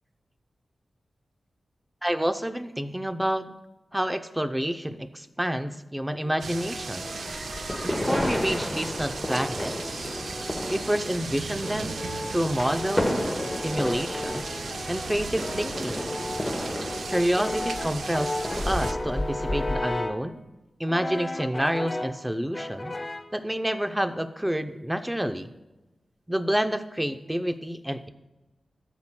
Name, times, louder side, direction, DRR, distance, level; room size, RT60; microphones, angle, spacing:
voice 1, 2.0-3.6 3.9-7.1 7.8-9.7 10.7-12.0 12.3-13.1 13.6-14.5 14.9-16.1 17.1-18.4 18.7-20.4 20.8-22.9 23.3-25.5 26.3-28.1, equal, 10° right, 8 dB, 0.6 m, -28 dB
Brass instrument, 6.2-8.2 8.9-10.9 11.6-20.3 20.9-22.2 22.5-23.4, left 2 dB, 35° left, 0.6 m, -36 dB
sound 1, 6.4-18.9, right 4 dB, 80° right, 0.5 m, -37 dB
sound 2, 7.0-19.8, left 1 dB, 15° left, 1.0 m, -32 dB
15.0 x 7.2 x 2.2 m, 1.1 s
wide cardioid pair, 75°, 0 cm